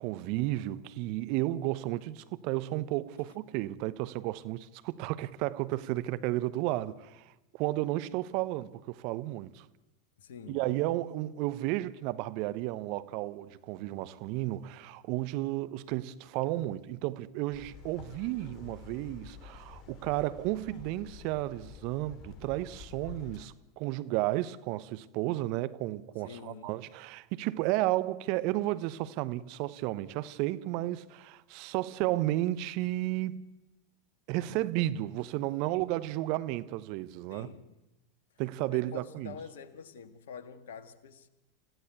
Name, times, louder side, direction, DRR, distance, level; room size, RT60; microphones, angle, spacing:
voice 1, 0.0-9.7 10.5-33.5 34.3-37.5 38.4-39.3, right 16 dB, 55° right, 1.0 m, -33 dB
voice 2, 10.2-10.8 26.3-26.8 34.4-34.7 37.3-37.7 38.7-41.3, left 6 dB, 70° left, 1.7 m, -47 dB
sound 1, 17.5-23.5, left 6 dB, 45° left, 2.7 m, -49 dB
27.5 x 15.5 x 8.2 m
hypercardioid pair, 90°, 0 cm